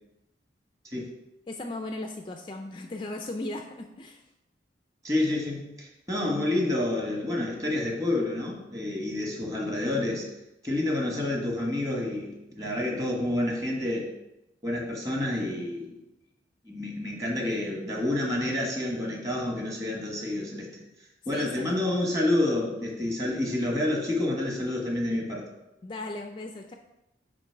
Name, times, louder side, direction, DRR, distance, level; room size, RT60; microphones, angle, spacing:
voice 1, 1.5-4.2 21.3-21.8 25.8-26.7, left 2 dB, 25° left, 4 dB, 0.4 m, -37 dB
voice 2, 5.0-10.3 10.6-14.1 14.6-16.0 16.6-20.8 21.3-25.5, left 1 dB, 20° right, -1 dB, 1.3 m, -29 dB
8.5 x 3.1 x 4.5 m, 0.91 s
head